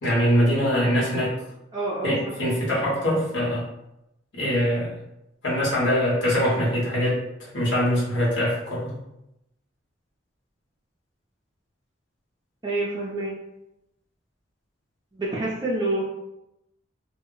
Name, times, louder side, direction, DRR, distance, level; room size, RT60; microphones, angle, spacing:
voice 1, 0.0-1.3 2.0-3.6 4.3-4.9 5.4-8.9, equal, 70° left, -7 dB, 1.0 m, -23 dB
voice 2, 1.7-2.3 12.6-13.4 15.1-16.0, right 2 dB, 20° right, -8 dB, 0.4 m, -27 dB
2.2 x 2.1 x 3.7 m, 0.87 s
head